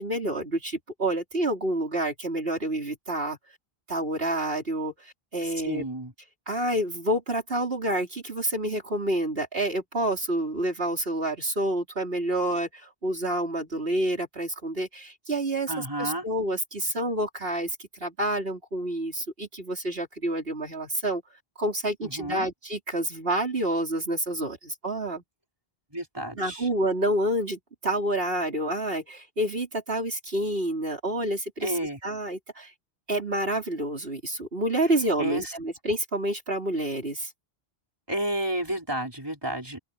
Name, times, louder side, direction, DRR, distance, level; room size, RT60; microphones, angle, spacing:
voice 1, 0.0-3.4 3.9-5.8 6.5-21.2 21.6-25.2 26.4-32.7 33.1-37.3, right 1 dB, 70° right, 4.8 m, -28 dB
voice 2, 5.6-6.1 15.7-16.2 22.0-22.5 25.9-26.7 31.6-32.0 35.2-35.5 38.1-39.8, right 1 dB, 25° right, 5.3 m, -31 dB
open air
omnidirectional pair, 1.0 m